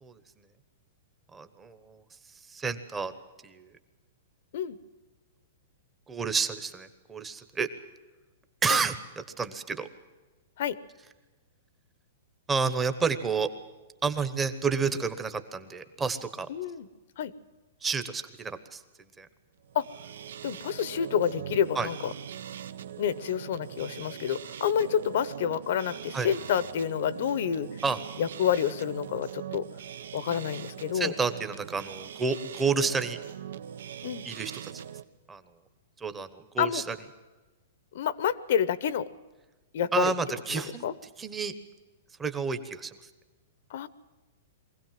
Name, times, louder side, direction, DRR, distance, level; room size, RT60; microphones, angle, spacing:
voice 1, 1.3-2.0 2.3-3.1 3.4-3.7 6.1-7.7 8.6-9.9 12.5-13.5 14.0-16.5 17.8-18.8 19.2-19.3 21.7-21.9 26.1-26.3 27.8-28.0 30.9-33.2 34.2-34.8 35.3-35.4 36.0-37.0 39.9-40.9 41.2-41.5 42.2-43.0, right 5 dB, 10° right, 10 dB, 1.0 m, -30 dB
voice 2, 16.5-16.9 17.2-17.3 19.7-19.9 20.4-22.1 23.0-27.8 28.2-29.7 30.1-31.1 34.0-34.2 36.6-36.8 37.9-39.1 39.7-40.1 40.5-40.9 43.7-43.9, left 9 dB, 50° left, 17 dB, 0.9 m, -28 dB
sound 1, 19.6-35.0, right 9 dB, 75° right, 1.0 m, -41 dB
23.5 x 17.0 x 7.6 m, 1.2 s
hypercardioid pair, 175°, 0 cm